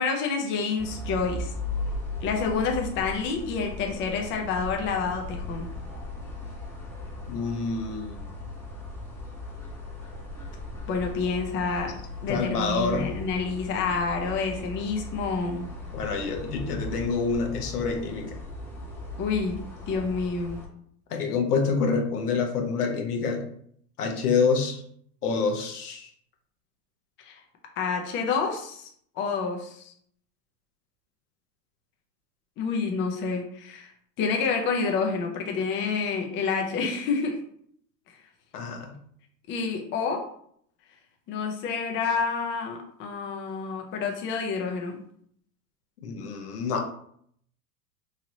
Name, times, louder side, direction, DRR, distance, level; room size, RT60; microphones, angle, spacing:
voice 1, 0.0-1.5 2.2-5.7 10.9-11.9 12.2-15.7 19.2-19.6 19.9-20.6 27.2-27.4 27.8-28.9 29.2-29.9 32.6-33.9 34.2-37.4 39.5-40.2 41.3-45.0, left 5 dB, 25° left, 2 dB, 0.5 m, -28 dB
sound 1, 0.8-20.7, left 2 dB, 5° left, 0.8 m, -37 dB
voice 2, 7.3-8.2 12.3-13.1 15.9-18.4 21.1-23.4 24.0-24.8 25.2-26.1 38.5-38.9 46.0-46.9, left 4 dB, 80° left, 3 dB, 0.9 m, -27 dB
3.1 x 2.8 x 2.7 m, 0.65 s
hypercardioid pair, 110°, 45 cm